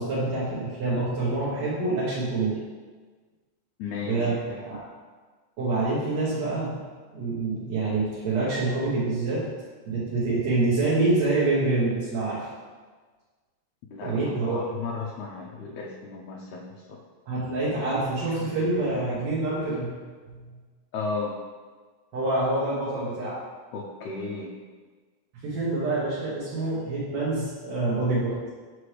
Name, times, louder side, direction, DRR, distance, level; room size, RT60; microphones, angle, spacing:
voice 1, 0.0-2.6 4.1-4.4 4.7-4.8 5.6-6.8 7.1-9.5 9.9-12.5 14.0-14.6 17.3-19.9 20.3-20.5 22.1-23.4 25.4-28.3, right 2 dB, 70° right, -9 dB, 2.4 m, -26 dB
voice 2, 3.8-4.6 13.9-17.0 20.9-21.3 23.7-24.5, left 4 dB, 80° left, -3 dB, 2.0 m, -34 dB
6.1 x 5.9 x 3.3 m, 1.4 s
omnidirectional pair, 3.3 m